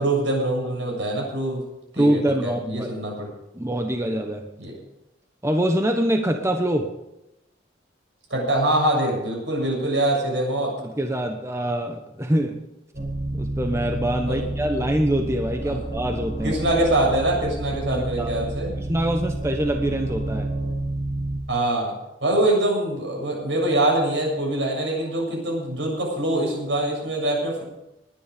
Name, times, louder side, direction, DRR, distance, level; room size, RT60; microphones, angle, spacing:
voice 1, 0.0-1.6 1.9-3.3 4.6-4.8 8.3-10.7 14.2-14.5 15.6-15.8 16.4-18.7 21.5-22.0 22.2-27.6, right 1 dB, 75° right, -1 dB, 7.4 m, -24 dB
voice 2, 2.0-2.9 3.5-4.4 5.4-6.9 10.8-12.6 13.3-16.6 17.9-18.3 18.8-20.5, right 1 dB, 15° right, 5 dB, 1.1 m, -24 dB
sound 1, 12.9-21.4, right 1 dB, 50° right, 6.9 m, -30 dB
20.5 x 10.5 x 5.2 m, 0.89 s
head